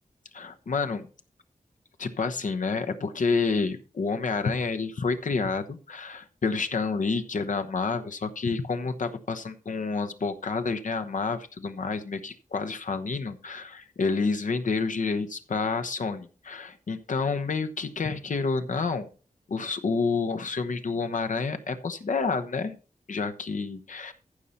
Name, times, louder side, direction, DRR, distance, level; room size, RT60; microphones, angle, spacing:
voice 1, 0.3-1.1 2.0-19.1 19.5-22.8 23.1-24.1, left 4 dB, 65° left, 8 dB, 1.0 m, -29 dB
14.5 x 5.7 x 4.2 m, 0.36 s
wide cardioid pair, 110°, 14 cm